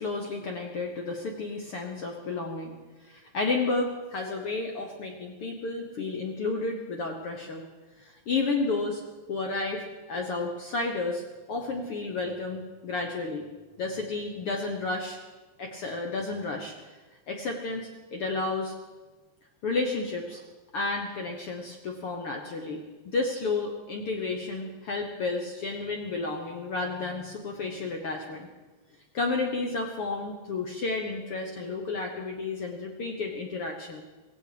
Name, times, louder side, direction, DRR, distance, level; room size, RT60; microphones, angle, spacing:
voice 1, 0.0-2.8 3.0-7.6 8.0-9.0 9.3-11.2 11.5-13.5 13.8-15.2 15.6-16.7 17.3-18.7 19.6-20.4 20.7-28.5 29.1-34.0, left 3 dB, 60° left, 2 dB, 1.5 m, -31 dB
17.0 x 16.5 x 5.0 m, 1.2 s
omnidirectional pair, 4.0 m